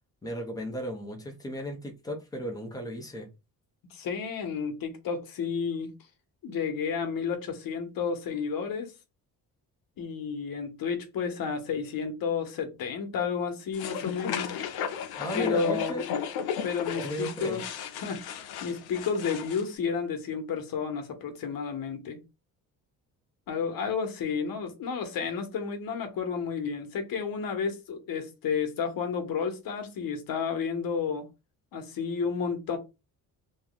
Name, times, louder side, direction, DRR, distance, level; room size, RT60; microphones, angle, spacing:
voice 1, 0.2-3.3 15.2-16.0 17.0-17.6, equal, 10° left, 0.9 m, -35 dB
voice 2, 3.9-5.9 6.4-8.9 10.0-14.6 15.3-16.0 16.6-17.6 18.0-22.2 23.5-31.3 31.7-32.8, left 6 dB, 65° left, 1.1 m, -31 dB
sound 1, 13.7-19.6, left 7 dB, 80° left, 0.7 m, -34 dB
3.0 x 2.3 x 3.8 m
cardioid pair, 145°, 38 cm